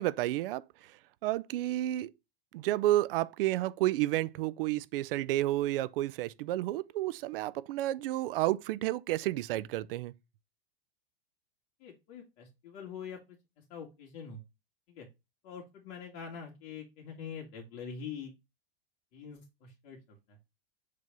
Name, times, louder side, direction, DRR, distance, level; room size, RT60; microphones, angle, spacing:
voice 1, 0.0-2.1 2.5-10.1, right 15 dB, 70° right, 0.6 m, -31 dB
voice 2, 11.8-13.4 13.7-14.4 14.9-15.1 15.4-18.3 19.1-20.4, left 6 dB, 50° left, 2.1 m, -44 dB
6.6 x 3.5 x 5.2 m
supercardioid pair, 125°, 30 cm